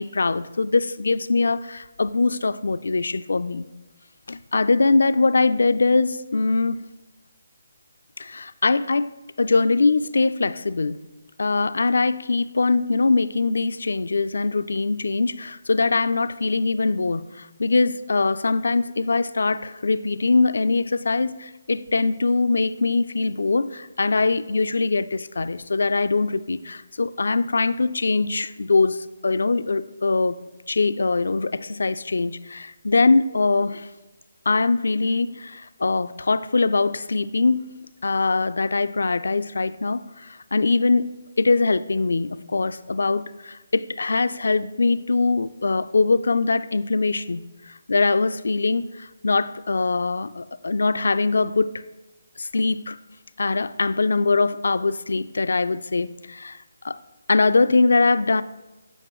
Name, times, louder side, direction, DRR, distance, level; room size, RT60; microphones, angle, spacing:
voice 1, 0.0-3.7 4.3-6.8 8.2-9.1 9.4-11.1 11.4-30.4 30.7-33.9 34.5-37.6 38.0-41.1 41.4-51.7 52.4-53.0 53.4-56.6 56.8-57.0 57.3-58.4, left 3 dB, 70° left, 14 dB, 0.3 m, -22 dB
8.9 x 5.8 x 3.0 m, 1.1 s
figure-of-eight pair, 155°, 0 cm